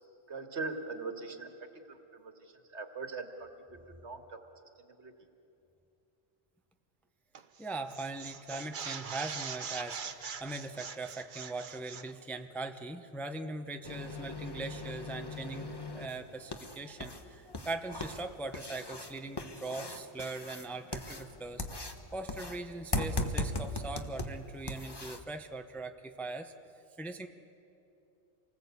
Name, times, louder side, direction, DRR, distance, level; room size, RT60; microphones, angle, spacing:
voice 1, 0.3-1.5 1.9-2.3 2.7-3.5 4.0-4.4 5.0-5.1, right 4 dB, 65° right, 6 dB, 1.9 m, -40 dB
sound 1, 7.3-7.6 7.9-12.1, right 6 dB, 45° right, 0.9 m, -42 dB
voice 2, 7.6-21.6 22.1-26.5 27.0-27.3, right 2 dB, ahead, 6 dB, 0.8 m, -41 dB
sound 2, 13.8-25.2, left 2 dB, 20° left, 1.2 m, -39 dB
27.5 x 19.0 x 8.3 m, 2.8 s
omnidirectional pair, 1.3 m